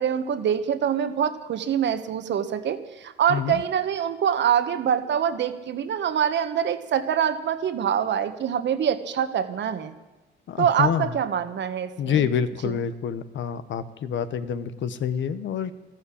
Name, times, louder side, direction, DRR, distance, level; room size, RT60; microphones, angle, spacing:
voice 1, 0.0-9.9 10.6-12.3 12.6-12.7, right 8 dB, 65° right, 9 dB, 1.5 m, -25 dB
voice 2, 3.3-3.6 10.5-11.1 12.0-15.7, left 8 dB, 70° left, 12 dB, 1.1 m, -27 dB
14.0 x 12.0 x 8.6 m, 1.1 s
cardioid pair, 90°, 20 cm